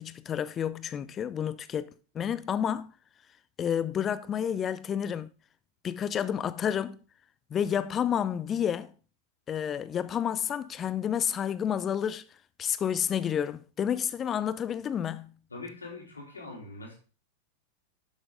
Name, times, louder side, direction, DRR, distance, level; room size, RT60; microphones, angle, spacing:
voice 1, 0.0-2.9 3.6-5.3 5.8-7.0 7.5-8.9 9.5-12.2 12.6-15.3, left 8 dB, 25° left, 0.6 m, -30 dB
voice 2, 15.5-17.0, left 3 dB, 80° left, 3.2 m, -42 dB
11.5 x 6.2 x 3.7 m
figure-of-eight pair, 90°, 0 cm